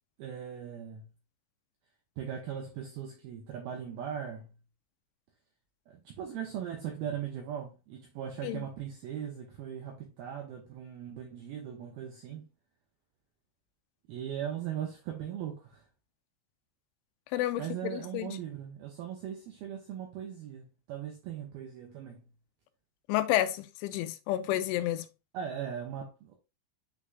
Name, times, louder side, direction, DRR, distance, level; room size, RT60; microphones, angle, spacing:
voice 1, 0.2-1.0 2.2-4.5 5.9-12.5 14.1-15.8 17.6-22.3 25.3-26.3, right 9 dB, 80° right, 2.2 m, -39 dB
voice 2, 17.3-18.4 23.1-25.1, left 14 dB, 85° left, 3.0 m, -30 dB
9.0 x 4.0 x 2.7 m
omnidirectional pair, 5.6 m